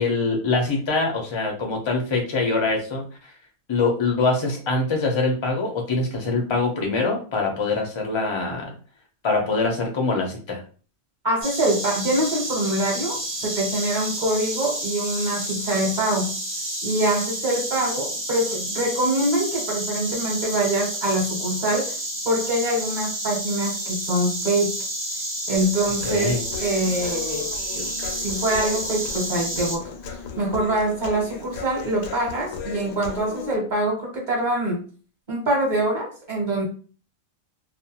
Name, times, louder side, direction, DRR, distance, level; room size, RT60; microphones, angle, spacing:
voice 1, 0.0-3.0 3.7-8.7 9.2-10.6 26.0-26.4, left 3 dB, 35° left, 1 dB, 0.5 m, -24 dB
voice 2, 11.2-16.4 16.8-22.0 22.2-24.7 25.5-27.5 27.7-29.8 30.4-34.8 35.3-36.6, right 1 dB, 40° right, -2 dB, 1.0 m, -24 dB
Insect, 11.4-29.8, right 1 dB, 15° right, 0.5 m, -30 dB
Human voice, 25.5-33.5, left 7 dB, 75° left, 1.0 m, -36 dB
2.4 x 2.2 x 2.8 m, 0.39 s
omnidirectional pair, 1.4 m